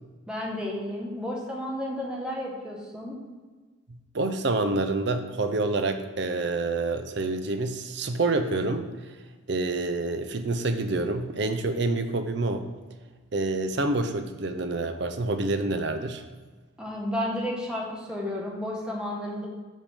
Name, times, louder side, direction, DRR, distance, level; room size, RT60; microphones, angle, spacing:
voice 1, 0.3-3.2 16.8-19.5, left 1 dB, 5° right, -3 dB, 1.2 m, -32 dB
voice 2, 4.1-8.9 9.5-12.7 13.3-16.2, right 2 dB, 55° right, 8 dB, 0.6 m, -27 dB
7.4 x 5.0 x 3.6 m, 1.3 s
head